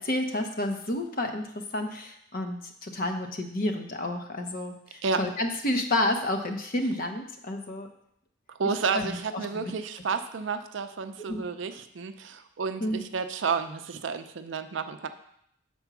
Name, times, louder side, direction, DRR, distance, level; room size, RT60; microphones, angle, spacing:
voice 1, 0.0-7.9 8.9-9.7 11.2-11.4 12.8-13.0, left 1 dB, 45° left, 5 dB, 0.8 m, -30 dB
voice 2, 8.5-15.1, right 5 dB, 65° right, 9 dB, 0.5 m, -31 dB
6.8 x 4.4 x 6.0 m, 0.71 s
head